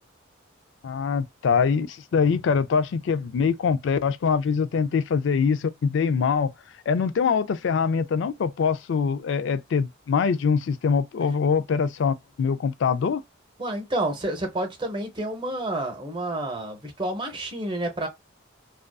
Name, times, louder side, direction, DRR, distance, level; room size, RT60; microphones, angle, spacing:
voice 1, 0.8-6.5 6.9-13.2, left 6 dB, 65° left, 0.3 m, -23 dB
voice 2, 13.6-18.1, right 1 dB, 25° right, 0.7 m, -29 dB
2.5 x 2.3 x 2.2 m
head